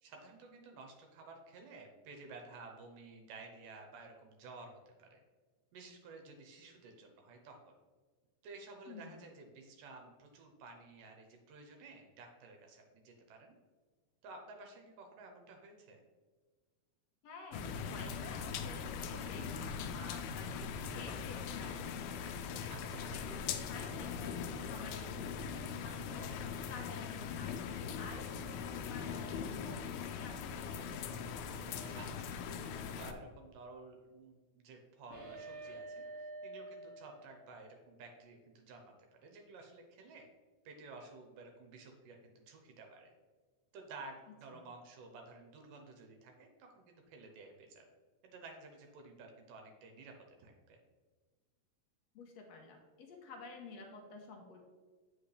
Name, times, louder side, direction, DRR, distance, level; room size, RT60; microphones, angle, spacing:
voice 1, 0.0-5.2 5.7-7.7 8.4-13.5 14.2-16.0 22.7-23.1 31.9-40.3 40.7-43.1 43.7-47.9 48.2-50.8, right 3 dB, 75° right, 3 dB, 2.4 m, -53 dB
voice 2, 8.9-9.2 17.2-22.2 22.6-26.3 26.7-31.5 44.5-44.7 52.1-54.6, left 3 dB, 65° left, 1 dB, 1.8 m, -50 dB
sound 1, 17.5-33.1, left 6 dB, 90° left, 2.4 m, -41 dB
sound 2, 29.0-29.5 31.7-32.3 35.1-37.6, right 2 dB, 45° right, 2.6 m, -49 dB
8.5 x 5.6 x 3.2 m, 1.4 s
omnidirectional pair, 4.0 m